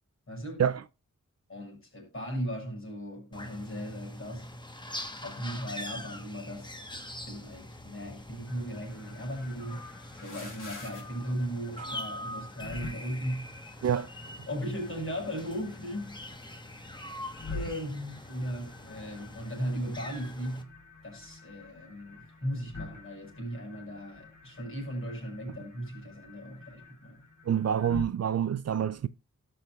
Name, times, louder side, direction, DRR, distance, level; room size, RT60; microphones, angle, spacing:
voice 1, 0.3-0.6 1.5-4.5 5.2-13.5 14.5-16.2 17.5-20.7 21.0-27.2, equal, 45° left, 5.7 m, -37 dB
sound 1, 3.3-20.6, left 1 dB, 15° left, 1.1 m, -44 dB
sound 2, 8.5-28.0, left 3 dB, 90° left, 3.9 m, -48 dB
voice 2, 27.5-29.1, right 8 dB, 55° right, 0.5 m, -27 dB
18.0 x 6.2 x 2.3 m
wide cardioid pair, 105°, 30 cm